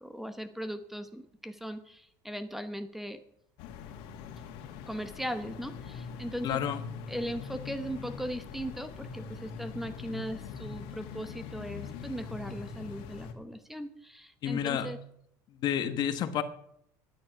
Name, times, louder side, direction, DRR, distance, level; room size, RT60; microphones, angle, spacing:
voice 1, 0.0-3.2 4.9-6.6 7.1-15.0, equal, 5° right, 10 dB, 1.0 m, -38 dB
sound 1, 3.6-13.3, left 6 dB, 75° left, 1.9 m, -43 dB
voice 2, 6.4-6.9 14.4-14.9 15.5-16.4, left 9 dB, 50° left, 10 dB, 1.2 m, -30 dB
12.0 x 9.7 x 5.9 m, 0.72 s
supercardioid pair, 120°, 9 cm